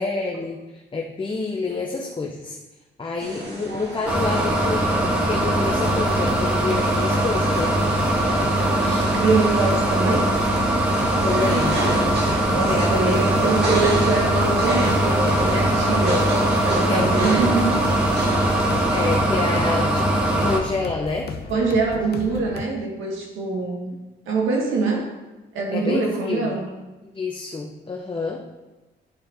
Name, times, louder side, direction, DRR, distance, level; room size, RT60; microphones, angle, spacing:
voice 1, 0.0-2.6 3.0-7.7 8.8-9.1 11.2-11.8 12.7-13.2 13.5-13.8 16.9-17.0 18.9-21.3 25.7-26.5 27.1-28.4, left 3 dB, 25° left, 0 dB, 0.8 m, -28 dB
sound 1, 3.2-19.1, right 1 dB, 60° right, 1.8 m, -30 dB
sound 2, 4.1-20.6, right 1 dB, 5° right, 1.6 m, -21 dB
sound 3, 5.8-22.7, left 5 dB, 55° left, 0.8 m, -35 dB
voice 2, 8.5-10.3 12.5-16.2 16.6-17.8 21.5-23.9 24.3-25.1 25.5-26.7, right 3 dB, 85° right, 0 dB, 1.7 m, -24 dB
10.5 x 4.3 x 3.6 m, 1.1 s
cardioid pair, 90°, 20 cm